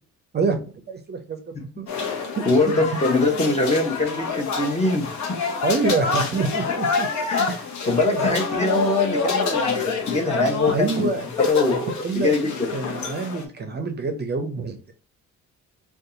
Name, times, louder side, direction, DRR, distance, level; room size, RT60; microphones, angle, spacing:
voice 1, 0.3-1.9 2.4-3.0 5.6-7.1 7.5-7.7 8.1-8.4 10.7-11.3 11.7-12.3 12.7-14.9, right 4 dB, 35° right, 6 dB, 0.5 m, -27 dB
sound 1, 1.9-13.4, left 4 dB, 70° left, 0.8 m, -27 dB
voice 2, 2.5-5.1 7.3-7.5 7.9-12.7, left 2 dB, 20° left, 2 dB, 0.8 m, -23 dB
2.6 x 2.3 x 3.8 m, 0.41 s
cardioid pair, 90°, 30 cm